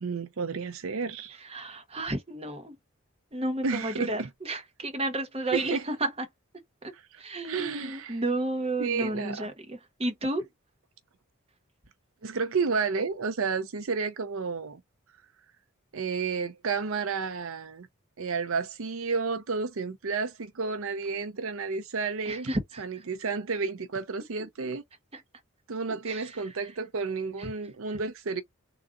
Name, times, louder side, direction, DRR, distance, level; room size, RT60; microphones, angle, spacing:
voice 1, 0.0-1.4 3.6-4.3 5.5-5.8 6.9-8.2 8.8-9.5 12.2-14.8 15.9-17.9 18.2-22.5 22.8-24.8 25.7-28.4, right 4 dB, 70° right, 0.6 m, -31 dB
voice 2, 1.4-2.7 3.3-6.3 6.8-6.9 7.2-10.5 22.3-22.8 25.1-25.2 26.1-26.2 27.4-27.5, right 2 dB, 25° right, 1.1 m, -32 dB
3.8 x 2.4 x 3.8 m
head